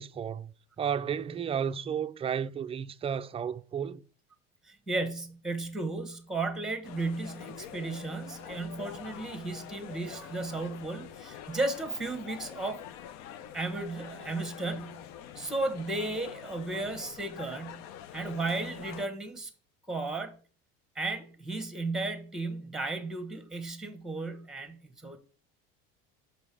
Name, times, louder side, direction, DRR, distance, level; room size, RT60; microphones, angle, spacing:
voice 1, 0.0-4.0, right 7 dB, 20° right, 0.4 m, -33 dB
voice 2, 4.6-12.8 13.5-15.1 15.3-17.8 18.1-19.5 19.9-20.4 20.9-25.2, right 2 dB, ahead, 1.2 m, -34 dB
sound 1, 6.8-19.1, left 10 dB, 65° left, 0.7 m, -45 dB
6.0 x 5.2 x 4.8 m
supercardioid pair, 100°, 29 cm